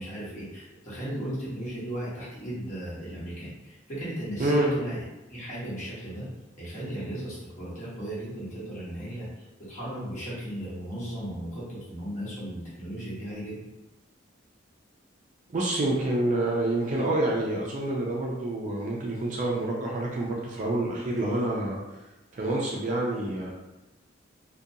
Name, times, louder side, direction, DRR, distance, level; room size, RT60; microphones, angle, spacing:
voice 1, 0.0-5.0 5.3-6.3 6.6-9.3 9.6-13.7, right 1 dB, 40° left, -9 dB, 1.1 m, -36 dB
voice 2, 15.5-22.0 22.3-23.5, right 1 dB, 40° right, -3 dB, 0.4 m, -27 dB
2.4 x 2.2 x 2.7 m, 1.0 s
head